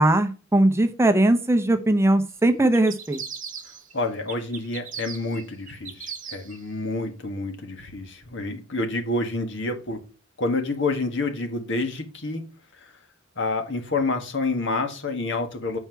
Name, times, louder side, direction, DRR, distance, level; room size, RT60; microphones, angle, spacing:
voice 1, 0.0-3.2, right 1 dB, 15° right, 8 dB, 0.6 m, -20 dB
sound 1, 2.7-3.9 4.3-6.6, right 7 dB, 40° right, 1.2 m, -38 dB
voice 2, 3.9-10.0 10.4-12.4 12.8-12.9 13.4-15.8, left 2 dB, 65° left, 5 dB, 1.6 m, -28 dB
7.7 x 4.6 x 4.5 m, 0.33 s
head